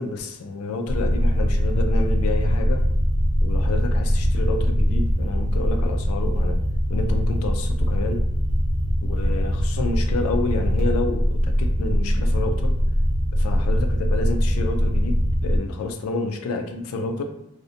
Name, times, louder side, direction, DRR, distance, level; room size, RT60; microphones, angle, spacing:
voice 1, 0.0-2.8 3.4-6.6 6.9-8.2 9.0-12.7 13.3-17.2, left 3 dB, 75° left, 5 dB, 0.3 m, -29 dB
sound 1, 0.9-15.6, equal, 45° right, 0.6 m, -22 dB
2.5 x 2.1 x 2.7 m, 0.90 s
head